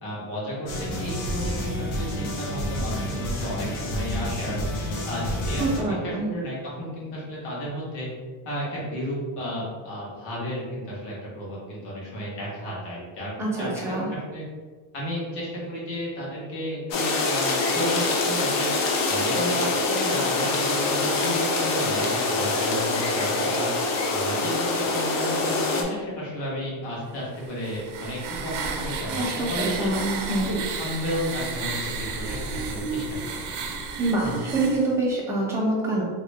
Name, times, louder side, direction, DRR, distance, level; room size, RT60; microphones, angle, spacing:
voice 1, 0.0-4.6 5.1-8.1 8.4-13.3 13.6-13.7 14.1-14.4 14.9-18.7 19.1-23.7 24.1-29.9 30.4-33.2 34.2-34.3, equal, 70° left, -5 dB, 1.4 m, -33 dB
sound 1, 0.7-5.8, equal, 90° left, 0.9 m, -29 dB
voice 2, 5.6-6.3 13.4-14.1 29.2-30.5 34.0-36.0, right 2 dB, 5° right, -5 dB, 0.5 m, -26 dB
sound 2, 16.9-25.8, left 3 dB, 50° left, 0.6 m, -24 dB
sound 3, 27.4-34.9, right 4 dB, 70° right, 0.6 m, -32 dB
2.9 x 2.6 x 3.2 m, 1.4 s
cardioid pair, 175°, 44 cm